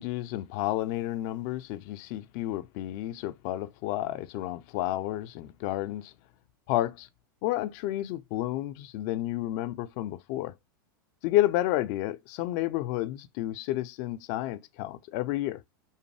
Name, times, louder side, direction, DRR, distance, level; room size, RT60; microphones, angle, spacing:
voice 1, 0.0-6.1 6.7-7.1 7.4-10.5 11.2-15.6, left 15 dB, 50° left, 0.5 m, -31 dB
5.4 x 2.1 x 3.3 m
hypercardioid pair, 105°, 12 cm